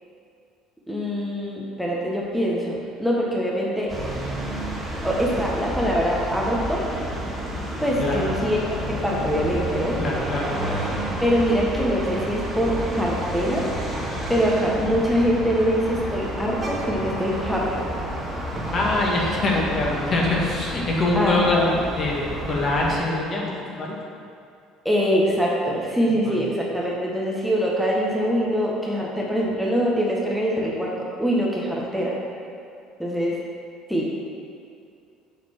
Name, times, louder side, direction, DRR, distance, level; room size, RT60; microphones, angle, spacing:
voice 1, 0.9-3.9 5.0-6.9 7.8-10.0 11.2-13.7 14.3-17.9 21.1-21.8 24.8-32.1 33.0-33.4 33.9-34.1, equal, ahead, -4 dB, 1.5 m, -23 dB
sound 1, 3.9-23.0, equal, 25° right, 1.9 m, -30 dB
voice 2, 10.0-10.5 18.7-23.5 23.7-24.0 26.1-26.4, left 2 dB, 45° left, -3 dB, 1.7 m, -24 dB
7.1 x 4.3 x 6.3 m, 2.5 s
hypercardioid pair, 70°, 0 cm